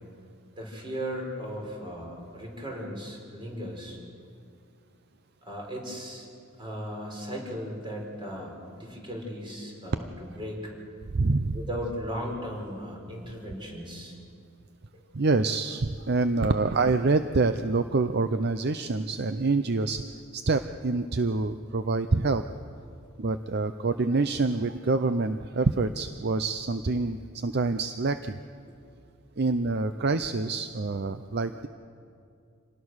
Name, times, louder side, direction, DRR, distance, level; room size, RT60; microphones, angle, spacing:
voice 1, 0.6-4.0 5.4-6.3 6.6-10.7 11.5-14.2, equal, 25° right, 0 dB, 4.9 m, -37 dB
voice 2, 11.1-11.6 15.1-20.0 20.3-22.4 23.2-28.4 29.4-31.7, right 3 dB, 50° right, 10 dB, 0.6 m, -26 dB
27.0 x 19.0 x 6.4 m, 2.4 s
head